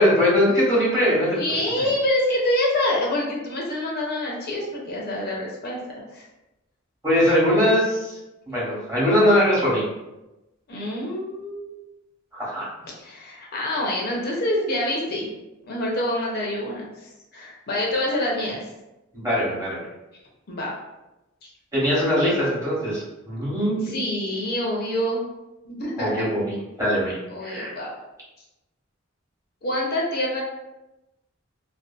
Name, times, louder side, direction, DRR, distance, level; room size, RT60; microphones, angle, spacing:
voice 1, 0.0-1.4 1.8-1.9 7.0-8.2 8.5-9.8 12.3-12.7 19.1-19.9 21.7-24.0 26.0-27.1 27.4-27.7, equal, 15° right, -8 dB, 1.0 m, -21 dB
voice 2, 1.3-6.2 10.7-11.8 12.8-15.3 15.7-18.7 20.5-20.7 21.4-21.5 23.8-25.3 25.6-26.3 27.3-27.9 29.6-30.4, left 1 dB, 50° left, -3 dB, 0.5 m, -26 dB
2.5 x 2.3 x 2.3 m, 0.98 s
head